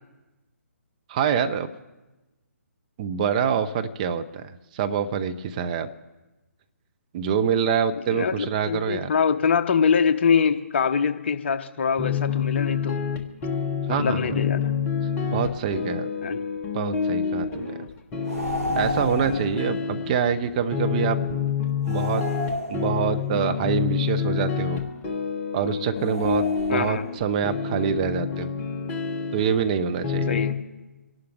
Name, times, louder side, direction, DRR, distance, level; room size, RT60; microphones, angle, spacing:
voice 1, 1.1-1.7 3.0-5.9 7.1-9.1 13.9-14.2 15.3-16.1 16.7-17.7 18.8-21.2 21.9-22.3 22.7-24.8 25.5-26.4 26.7-28.5 29.3-30.4, right 7 dB, 30° right, 8 dB, 0.7 m, -25 dB
voice 2, 8.1-13.0 13.9-14.7 16.2-16.4 19.2-19.4 26.7-27.0 30.3-30.6, left 6 dB, 45° left, 9 dB, 0.9 m, -24 dB
sound 1, 12.0-30.5, left 6 dB, 20° left, 1.4 m, -28 dB
sound 2, 18.2-19.6 21.8-23.3 26.0-27.1, equal, 90° right, 3.3 m, -32 dB
26.0 x 11.5 x 3.4 m, 1.1 s
figure-of-eight pair, 140°, 8 cm